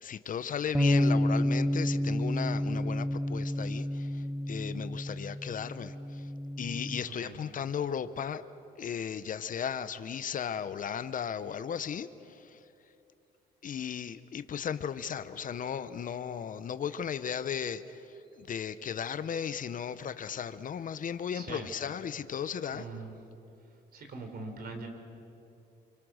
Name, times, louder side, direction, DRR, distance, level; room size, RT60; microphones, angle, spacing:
voice 1, 0.0-6.3 6.6-8.4 8.8-12.6 13.6-22.8, left 8 dB, 50° left, 13 dB, 0.9 m, -36 dB
sound 1, 0.7-7.0, left 1 dB, 5° right, 0.7 m, -30 dB
voice 2, 7.0-7.4 18.3-18.5 21.3-21.7 22.7-23.1 23.9-24.9, right 3 dB, 55° right, 4 dB, 4.2 m, -42 dB
28.0 x 25.0 x 6.5 m, 2.7 s
cardioid pair, 95°, 18 cm